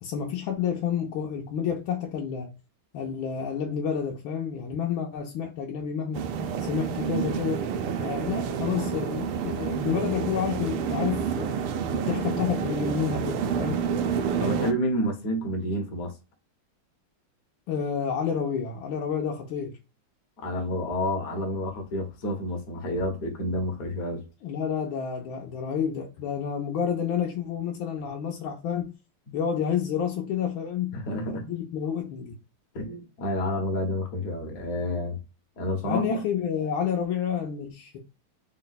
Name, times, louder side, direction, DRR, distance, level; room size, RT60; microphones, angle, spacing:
voice 1, 0.0-2.5 2.9-6.3 6.6-7.6 8.0-11.6 11.9-13.8 17.7-19.7 24.4-28.9 29.3-32.3 35.8-38.0, left 7 dB, 75° left, 1.4 m, -29 dB
sound 1, 6.1-14.7, right 7 dB, 90° right, 1.5 m, -29 dB
voice 2, 14.4-16.1 20.4-24.2 30.9-31.4 32.7-35.2 35.6-36.2, left 1 dB, 55° left, 1.1 m, -29 dB
4.0 x 2.2 x 3.9 m
omnidirectional pair, 2.3 m